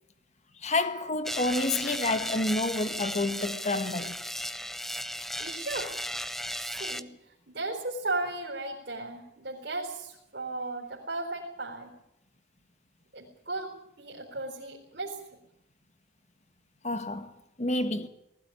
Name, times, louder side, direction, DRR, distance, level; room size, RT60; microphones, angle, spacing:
voice 1, 0.6-4.2 16.8-17.3 17.6-18.1, left 2 dB, 40° left, 1.6 m, -29 dB
sound 1, 1.2-7.0, equal, ahead, 0.7 m, -35 dB
voice 2, 5.4-6.0 6.6-11.9 13.1-15.4, right 2 dB, 65° right, 4.0 m, -36 dB
19.5 x 15.5 x 9.9 m
head